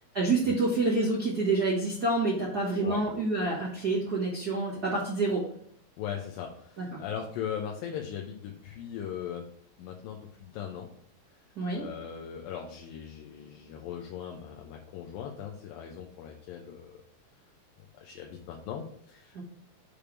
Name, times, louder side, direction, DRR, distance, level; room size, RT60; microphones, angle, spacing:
voice 1, 0.1-5.4 6.8-6.9 11.6-11.8 19.3-19.4, right 3 dB, 55° right, -5 dB, 1.0 m, -27 dB
voice 2, 6.0-9.5 9.8-10.9 11.7-17.0 17.9-19.4, left 8 dB, 80° left, 1 dB, 2.4 m, -39 dB
6.7 x 3.5 x 5.9 m, 0.67 s
omnidirectional pair, 4.4 m